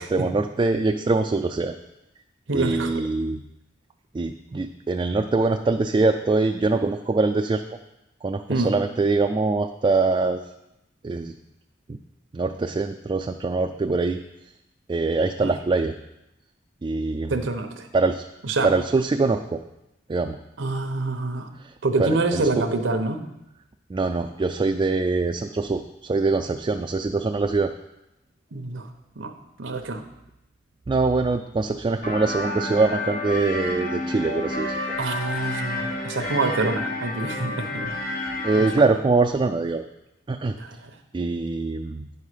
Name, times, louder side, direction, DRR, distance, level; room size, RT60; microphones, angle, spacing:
voice 1, 0.0-1.7 2.5-3.4 4.1-7.6 8.2-10.4 11.0-11.3 12.3-14.2 14.9-15.9 16.8-17.5 17.9-18.2 18.6-19.6 20.1-20.4 22.0-22.7 23.9-27.7 30.9-34.8 38.4-39.8 40.3-40.6 41.1-42.1, right 3 dB, 25° right, 5 dB, 0.3 m, -23 dB
voice 2, 2.5-3.0 8.5-8.7 15.4-15.5 17.3-17.9 18.4-18.7 20.6-21.5 21.8-23.3 28.5-28.9 29.2-29.3 29.6-30.0 35.0-37.9 38.5-38.6 40.6-40.9, right 3 dB, 85° right, 7 dB, 0.9 m, -26 dB
sound 1, 32.0-38.7, left 2 dB, 65° left, 2.8 m, -30 dB
9.6 x 5.5 x 4.9 m, 0.88 s
head